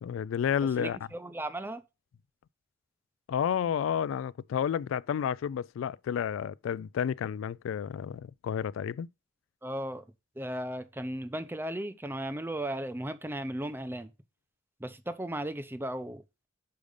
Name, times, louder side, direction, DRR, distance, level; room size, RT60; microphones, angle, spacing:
voice 1, 0.0-1.0 3.3-9.1, left 8 dB, 85° left, 0.3 m, -31 dB
voice 2, 0.8-1.8 9.6-10.0 10.4-14.1 14.8-16.5, right 1 dB, 10° right, 0.6 m, -36 dB
6.7 x 5.1 x 5.0 m
head